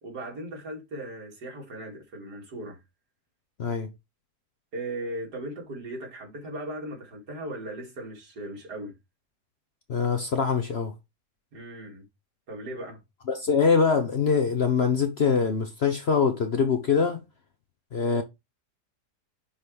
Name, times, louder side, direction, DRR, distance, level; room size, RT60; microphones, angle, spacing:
voice 1, 0.0-2.8 4.7-8.9 11.5-12.0 12.5-13.0, right 1 dB, 70° right, 2.9 m, -37 dB
voice 2, 9.9-10.9 13.3-17.2 17.9-18.2, left 5 dB, 50° left, 0.9 m, -23 dB
9.9 x 3.8 x 3.3 m
omnidirectional pair, 1.8 m